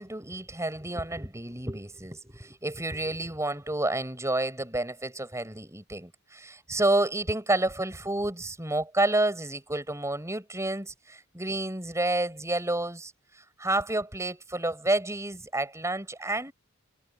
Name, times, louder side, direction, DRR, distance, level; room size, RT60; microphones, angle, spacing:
voice 1, 0.0-16.5, right 2 dB, 15° right, 5.8 m, -30 dB
head